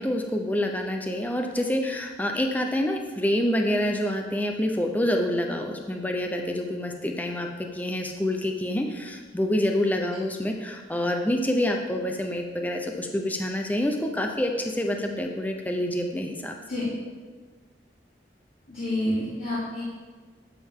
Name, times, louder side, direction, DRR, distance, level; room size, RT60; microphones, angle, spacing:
voice 1, 0.0-16.5, left 1 dB, 10° left, 3 dB, 0.6 m, -27 dB
voice 2, 18.7-19.8, left 1 dB, 55° left, -11 dB, 2.9 m, -28 dB
11.5 x 7.6 x 3.7 m, 1.4 s
head